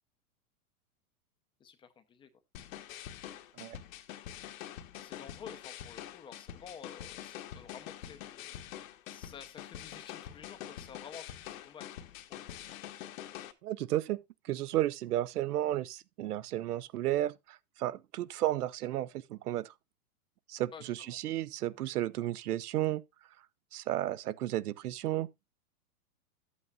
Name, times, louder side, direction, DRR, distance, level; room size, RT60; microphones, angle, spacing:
voice 1, 1.6-2.3 5.0-8.6 9.1-11.9 12.3-12.5 20.7-21.2, left 7 dB, 10° left, 0.6 m, -51 dB
sound 1, 2.5-13.5, left 11 dB, 60° left, 1.3 m, -45 dB
voice 2, 13.6-14.2 14.4-19.7 20.5-23.0 23.7-25.3, right 14 dB, 80° right, 0.7 m, -33 dB
12.0 x 8.3 x 2.3 m
hypercardioid pair, 140°, 45 cm